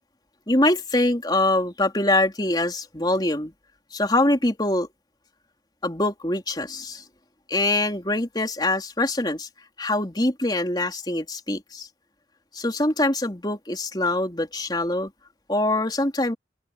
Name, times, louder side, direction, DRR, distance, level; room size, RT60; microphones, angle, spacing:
voice 1, 0.5-3.5 3.9-4.9 5.8-7.0 7.5-9.5 9.8-11.9 12.5-15.1 15.5-16.3, left 2 dB, 25° left, 3.7 m, -24 dB
open air
head